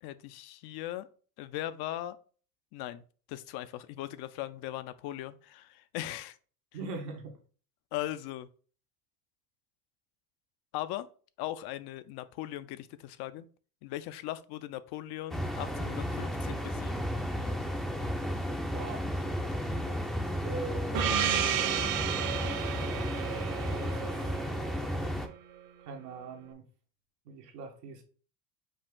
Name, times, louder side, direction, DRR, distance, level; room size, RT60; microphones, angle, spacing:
voice 1, 0.0-1.1 1.4-2.2 2.7-3.0 3.3-6.4 7.9-8.5 10.7-11.1 11.4-13.5 13.8-16.9, left 14 dB, 55° left, 0.5 m, -39 dB
voice 2, 6.7-7.3 18.7-19.0 20.4-21.7 23.7-24.1 25.9-26.6 27.3-28.0, right 3 dB, 90° right, 1.2 m, -41 dB
sound 1, 15.3-25.3, equal, ahead, 0.4 m, -33 dB
Gong, 20.9-25.3, right 9 dB, 45° right, 0.7 m, -32 dB
5.1 x 2.4 x 3.6 m
supercardioid pair, 85°, 47 cm